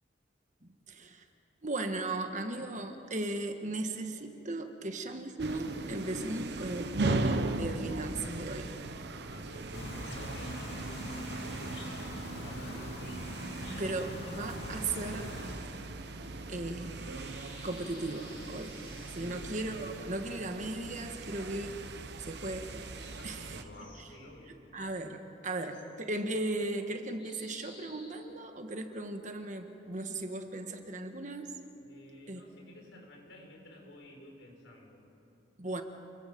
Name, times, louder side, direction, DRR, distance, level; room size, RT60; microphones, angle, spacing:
voice 1, 0.6-1.2 1.6-8.7 13.7-15.3 16.5-17.1 17.6-18.8 19.1-21.8 22.2-23.5 24.7-31.5 32.3-32.4 35.6-35.8, right 2 dB, 40° right, 6 dB, 1.5 m, -37 dB
sound 1, 5.4-23.6, right 2 dB, 60° right, 1.1 m, -38 dB
voice 2, 9.2-13.1 19.2-19.5 23.2-24.6 31.8-35.0, left 1 dB, 80° left, 1 dB, 4.9 m, -52 dB
sound 2, 9.7-15.5, left 1 dB, 60° left, 2.8 m, -42 dB
sound 3, 15.5-19.9 22.7-24.1 25.7-25.9 27.2-29.1, left 2 dB, 25° left, 3.9 m, -56 dB
29.5 x 22.5 x 5.3 m, 3.0 s
head